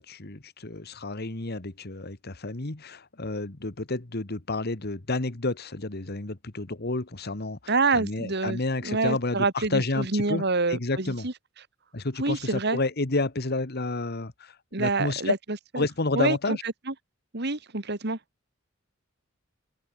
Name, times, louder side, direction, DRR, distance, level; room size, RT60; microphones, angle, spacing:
voice 1, 0.0-7.6 7.9-10.4 10.7-11.3 11.9-15.3 15.7-16.6, left 2 dB, 50° left, 1.6 m, -30 dB
voice 2, 7.7-11.3 12.2-12.8 14.7-15.9 16.2-16.9 17.3-18.2, right 3 dB, 55° right, 2.2 m, -27 dB
open air
head